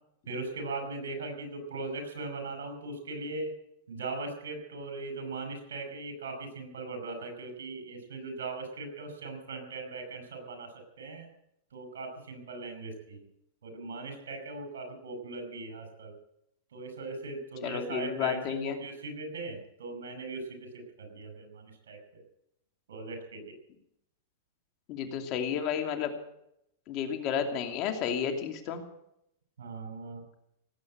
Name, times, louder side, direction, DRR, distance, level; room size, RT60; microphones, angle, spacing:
voice 1, 0.3-3.5 3.9-11.3 11.7-13.3 13.6-16.1 16.7-22.0 22.9-23.5 29.6-30.2, right 3 dB, 85° right, 6 dB, 5.5 m, -39 dB
voice 2, 17.6-18.8 24.9-26.1 26.9-28.8, left 8 dB, 45° left, 5 dB, 2.7 m, -31 dB
18.0 x 8.5 x 8.7 m, 0.78 s
hypercardioid pair, 130°, 0 cm